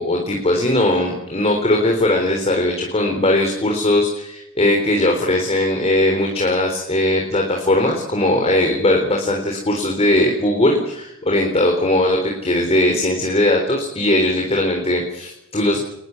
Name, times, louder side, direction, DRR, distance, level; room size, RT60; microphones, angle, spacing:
voice 1, 0.0-15.8, left 1 dB, 30° left, 1 dB, 3.9 m, -19 dB
24.0 x 20.5 x 8.4 m, 0.83 s
head